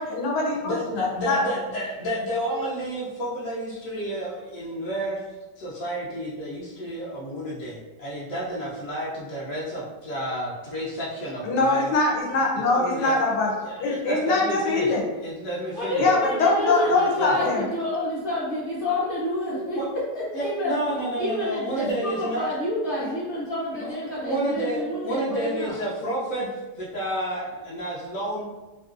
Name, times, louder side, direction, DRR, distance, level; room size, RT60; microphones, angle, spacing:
voice 1, 0.0-1.4 11.4-15.1 16.0-17.6, left 3 dB, 80° left, -2 dB, 1.3 m, -23 dB
voice 2, 0.6-11.9 12.6-13.2 13.6-16.0 16.8-17.4 19.7-19.9 20.3-22.5 23.0-23.1 23.7-28.4, right 1 dB, 65° left, -6 dB, 0.9 m, -31 dB
voice 3, 15.7-19.8 20.4-20.7 21.2-25.8, left 1 dB, 40° left, -8 dB, 1.0 m, -28 dB
3.0 x 2.7 x 2.4 m, 1.1 s
omnidirectional pair, 1.8 m